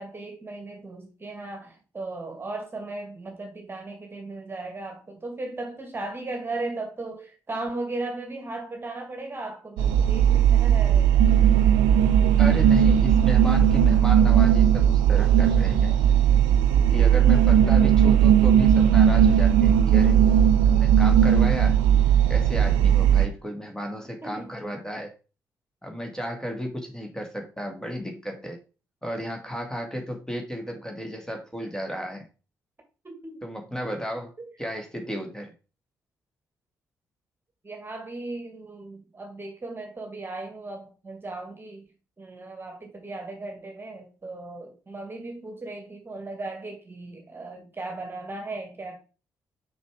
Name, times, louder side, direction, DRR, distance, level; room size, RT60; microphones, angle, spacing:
voice 1, 0.0-11.2 24.2-24.6 33.0-33.4 34.4-34.5 37.6-41.9 42.2-49.0, right 2 dB, 25° right, 2.0 m, -36 dB
sound 1, 9.8-23.3, right 9 dB, 65° right, 0.6 m, -18 dB
voice 2, 12.4-16.0 16.9-20.2 20.7-21.8 22.3-25.1 25.8-28.6 29.0-32.3 33.4-34.3 34.6-35.5, equal, 5° left, 2.1 m, -33 dB
6.5 x 4.8 x 4.8 m
figure-of-eight pair, 40°, 9 cm